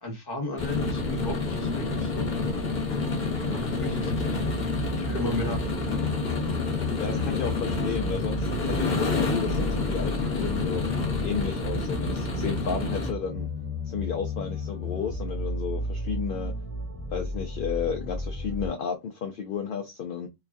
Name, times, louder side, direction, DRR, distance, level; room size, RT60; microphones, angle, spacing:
voice 1, 0.0-2.3 3.5-4.6 4.9-5.9, left 2 dB, 20° left, 1.1 m, -35 dB
sound 1, 0.6-13.1, left 3 dB, 40° left, 1.1 m, -28 dB
sound 2, 3.9-18.7, equal, 30° right, 0.8 m, -34 dB
voice 2, 7.0-10.8 11.2-13.5 13.9-16.5 17.1-20.3, left 7 dB, 60° left, 0.6 m, -32 dB
3.1 x 2.3 x 2.4 m
omnidirectional pair, 1.3 m